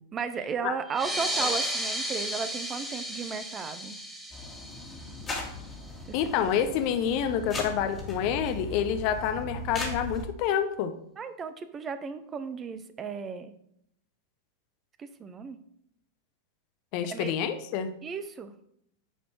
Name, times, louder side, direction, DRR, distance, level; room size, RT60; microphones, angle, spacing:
voice 1, 0.1-4.0 6.3-6.4 11.2-13.5 15.0-15.6 17.1-17.3 18.0-18.5, right 6 dB, 25° right, 11 dB, 0.6 m, -35 dB
sound 1, 0.9-6.0, equal, 5° right, 1.3 m, -34 dB
sound 2, 4.3-10.2, left 2 dB, 20° left, 1.9 m, -38 dB
voice 2, 6.1-10.9 16.9-17.9, left 8 dB, 45° left, 8 dB, 0.8 m, -28 dB
9.0 x 4.2 x 4.6 m, 0.73 s
figure-of-eight pair, 90°, 0 cm